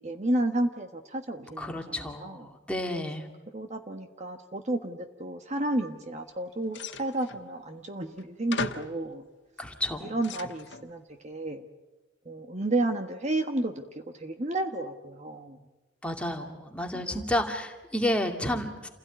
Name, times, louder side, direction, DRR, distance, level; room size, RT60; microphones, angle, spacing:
voice 1, 0.0-2.4 3.5-9.2 10.0-11.6 12.2-15.6 16.9-17.2, right 1 dB, 35° right, 6 dB, 1.4 m, -32 dB
voice 2, 1.6-3.3 9.6-10.1 16.0-18.9, left 1 dB, 5° left, 3 dB, 2.4 m, -31 dB
sound 1, 6.7-7.4 8.2-8.3 8.5-9.0 9.7-10.9, left 5 dB, 65° left, 1.5 m, -37 dB
29.0 x 17.0 x 9.4 m, 1.1 s
head